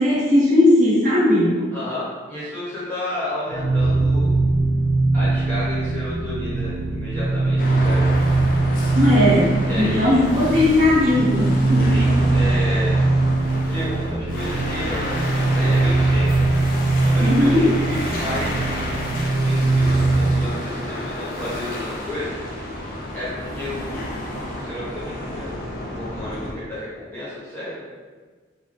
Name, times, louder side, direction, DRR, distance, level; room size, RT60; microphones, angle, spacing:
voice 1, 0.0-1.6 8.9-12.4 17.2-17.7, left 1 dB, 40° right, -9 dB, 1.1 m, -18 dB
voice 2, 1.7-4.3 5.1-8.1 9.7-10.2 11.9-12.9 13.6-15.2 15.5-16.4 17.0-18.7 19.1-22.4 23.1-24.1 24.6-27.7, left 1 dB, 10° left, -11 dB, 1.1 m, -32 dB
sound 1, 3.5-20.5, right 2 dB, 90° right, 0.3 m, -21 dB
sound 2, 7.6-26.5, left 1 dB, 50° left, 0.5 m, -31 dB
4.1 x 2.2 x 3.3 m, 1.4 s
head